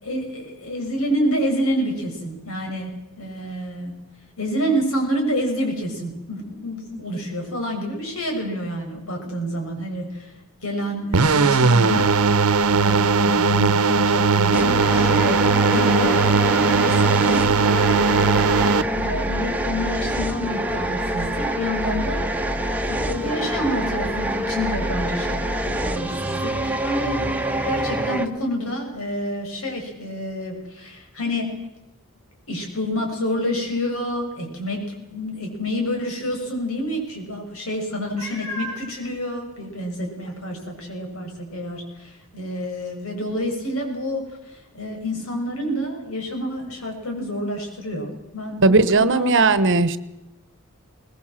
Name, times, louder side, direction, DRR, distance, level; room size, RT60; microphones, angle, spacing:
voice 1, 0.0-2.9 3.2-3.9 4.4-10.3 10.6-12.2 12.6-16.3 16.6-18.3 19.0-22.2 22.8-31.5 32.5-34.8 35.1-49.3, equal, 70° left, 2 dB, 6.5 m, -28 dB
sound 1, 11.1-18.8, right 4 dB, 90° right, 1.0 m, -18 dB
sound 2, 14.5-28.3, right 1 dB, 5° right, 1.4 m, -26 dB
Meow, 38.2-38.9 39.6-39.7 40.2-40.3 44.3-44.4, equal, 15° left, 5.1 m, -33 dB
voice 2, 48.6-50.0, right 3 dB, 60° right, 15 dB, 1.1 m, -17 dB
22.0 x 20.0 x 7.6 m, 0.92 s
head